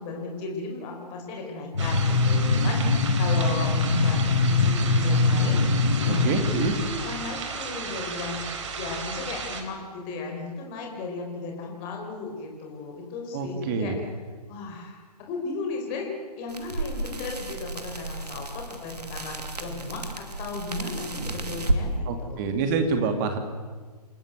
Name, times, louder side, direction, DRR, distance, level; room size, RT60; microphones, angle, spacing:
voice 1, 0.0-5.6 6.0-8.4 8.7-13.9 14.5-16.1 16.4-22.5, left 3 dB, 25° left, 1 dB, 4.3 m, -35 dB
sound 1, 1.7-6.7, left 3 dB, 75° left, 1.8 m, -22 dB
sound 2, 1.8-9.6, right 5 dB, 45° right, 3.7 m, -34 dB
voice 2, 6.1-6.7 13.3-14.0 22.0-23.4, right 5 dB, 30° right, 6 dB, 2.7 m, -27 dB
sound 3, 16.5-21.8, right 2 dB, 80° right, 2.7 m, -32 dB
28.0 x 14.0 x 9.2 m, 1.5 s
figure-of-eight pair, 130°, 20 cm